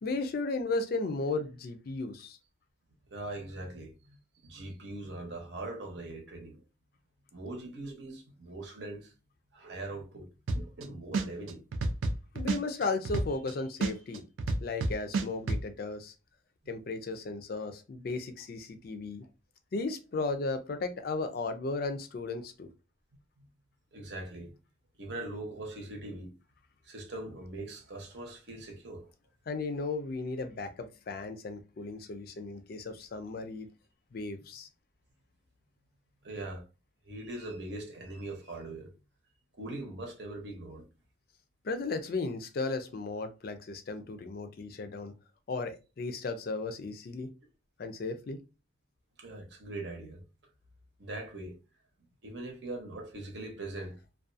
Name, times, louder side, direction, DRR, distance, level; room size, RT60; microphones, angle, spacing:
voice 1, 0.0-2.4 12.3-14.2 14.6-16.1 16.7-19.2 19.7-22.7 29.5-33.7 34.1-34.7 41.6-45.1 45.5-47.3 47.8-48.4, left 3 dB, 50° left, 0.4 m, -35 dB
voice 2, 3.1-4.2 4.4-6.6 7.3-9.1 9.5-10.3 10.5-11.6 23.4-23.5 23.9-24.5 25.0-26.3 26.8-29.1 34.3-34.4 36.2-36.6 37.0-38.9 39.5-40.9 49.2-50.2 51.0-51.6 52.2-54.0, right 2 dB, 60° right, 0.8 m, -41 dB
sound 1, 10.5-10.8 11.1-13.5 13.8-15.6, right 2 dB, 80° right, 0.4 m, -29 dB
2.4 x 2.2 x 2.5 m
head